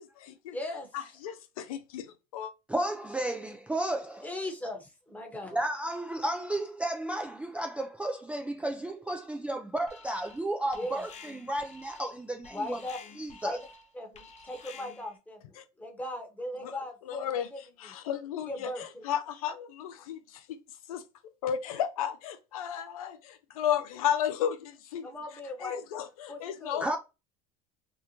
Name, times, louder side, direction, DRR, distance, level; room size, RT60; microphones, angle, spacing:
voice 1, 0.0-0.6 0.9-2.5 15.6-15.7 16.6-16.7 17.1-17.5 17.8-20.2 20.5-20.6 20.9-21.0 21.4-25.1 25.6-27.0, left 9 dB, 90° left, 0.4 m, -33 dB
voice 2, 0.5-0.9 4.2-5.7 10.7-11.0 12.5-13.0 13.4-13.6 13.9-17.9 18.5-19.0 25.0-25.8 26.3-26.8, left 1 dB, 10° left, 0.9 m, -38 dB
voice 3, 2.7-4.3 5.5-12.8 13.2-13.6 26.8-27.0, right 1 dB, 5° right, 0.3 m, -33 dB
Alarm, 9.9-10.5 10.7-15.2, left 4 dB, 40° left, 0.6 m, -50 dB
2.8 x 2.1 x 2.8 m
hypercardioid pair, 85°, 18 cm